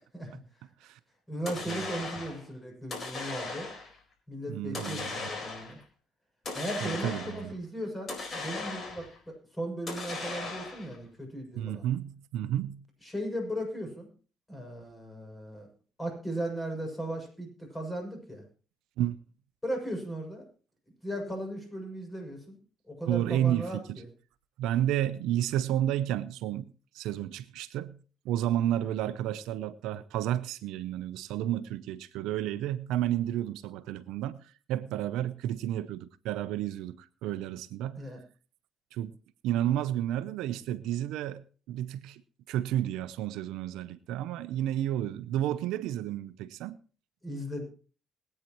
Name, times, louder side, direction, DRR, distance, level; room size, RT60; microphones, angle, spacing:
voice 1, 1.3-3.7 4.3-5.8 6.5-11.9 13.0-14.1 14.5-15.7 16.0-18.4 19.6-20.4 21.0-22.6 22.9-24.0 38.0-38.2 47.2-47.6, right 1 dB, 20° left, 6.9 m, -37 dB
sound 1, 1.5-2.4 2.9-4.0 4.7-5.8 6.5-7.5 8.1-9.2 9.9-11.0, left 3 dB, 50° left, 4.4 m, -37 dB
voice 2, 4.5-5.1 6.8-7.5 11.6-12.9 19.0-19.2 23.1-24.0 24.6-26.7 26.9-28.0 28.2-38.1 38.9-39.1 39.4-42.2 42.5-46.8, right 12 dB, 90° right, 0.6 m, -31 dB
22.0 x 9.1 x 3.1 m
supercardioid pair, 75°, 0 cm